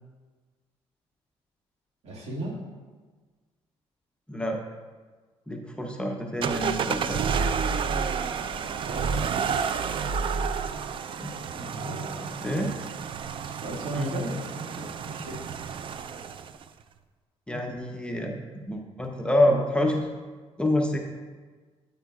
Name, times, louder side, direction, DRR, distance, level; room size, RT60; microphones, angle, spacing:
voice 1, 2.0-2.5 8.3-9.2 11.4-12.4 13.4-16.1, right 2 dB, 65° right, -2 dB, 2.0 m, -38 dB
voice 2, 4.3-4.6 5.5-7.2 11.2-11.3 11.8-12.0 12.4-12.7 13.9-14.2 17.5-20.1 20.6-21.0, left 1 dB, 10° left, 1 dB, 0.7 m, -27 dB
sound 1, 6.4-16.6, right 6 dB, 50° right, 0.4 m, -30 dB
8.8 x 8.4 x 2.4 m, 1.4 s
cardioid pair, 105°, 11 cm